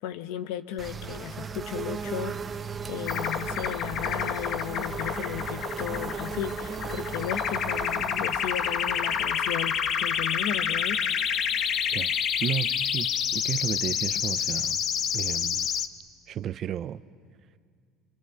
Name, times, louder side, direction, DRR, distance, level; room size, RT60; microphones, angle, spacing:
voice 1, 0.0-2.4 2.9-11.0, left 11 dB, 80° left, 1.0 m, -35 dB
sound 1, 0.8-11.4, right 6 dB, 25° right, 1.1 m, -37 dB
sound 2, 3.1-15.9, left 8 dB, 55° left, 1.1 m, -28 dB
voice 2, 8.0-8.3 9.1-9.2 11.1-11.2 11.9-12.1 12.4-14.8 15.1-15.7 16.3-17.0, right 10 dB, 50° right, 0.7 m, -33 dB
27.5 x 24.5 x 7.6 m
supercardioid pair, 105°, 0 cm